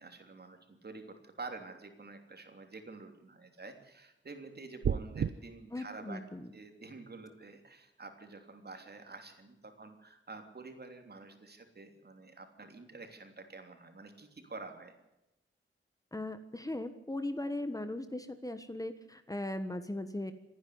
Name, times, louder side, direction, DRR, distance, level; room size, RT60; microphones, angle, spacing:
voice 1, 0.0-6.2 6.5-14.9, right 3 dB, 50° right, 5 dB, 3.2 m, -48 dB
sound 1, 4.8-5.3, right 7 dB, 70° right, 0.7 m, -30 dB
voice 2, 5.7-6.5 16.1-20.3, left 1 dB, 15° left, 10 dB, 1.4 m, -38 dB
27.0 x 10.5 x 9.5 m, 0.92 s
wide cardioid pair, 105°, 21 cm